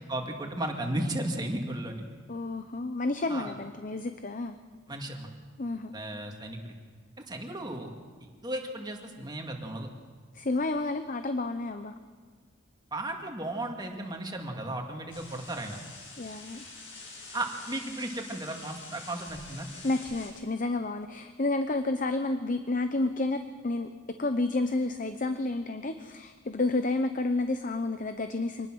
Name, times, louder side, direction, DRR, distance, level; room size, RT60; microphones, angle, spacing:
voice 1, 0.1-2.1 3.3-3.5 4.9-5.3 5.9-6.7 7.3-7.9 8.4-9.9 12.9-15.8 17.3-19.7, right 1 dB, 20° right, 2 dB, 2.3 m, -35 dB
voice 2, 2.3-4.5 5.6-6.0 10.3-11.9 16.2-16.7 19.8-28.7, left 2 dB, 40° left, 8 dB, 0.8 m, -30 dB
sound 1, 15.1-20.3, left 3 dB, 70° left, 7.6 m, -46 dB
25.0 x 19.5 x 6.3 m, 1.6 s
head